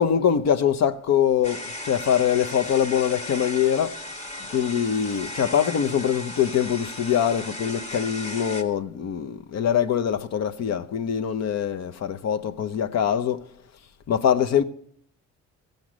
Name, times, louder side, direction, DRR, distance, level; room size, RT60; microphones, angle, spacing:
voice 1, 0.0-4.0 4.4-13.5 14.1-14.6, left 8 dB, 60° left, 0.8 m, -23 dB
sound 1, 1.4-8.6, left 1 dB, 25° left, 1.5 m, -36 dB
15.0 x 5.3 x 6.1 m
cardioid pair, 90°, 30 cm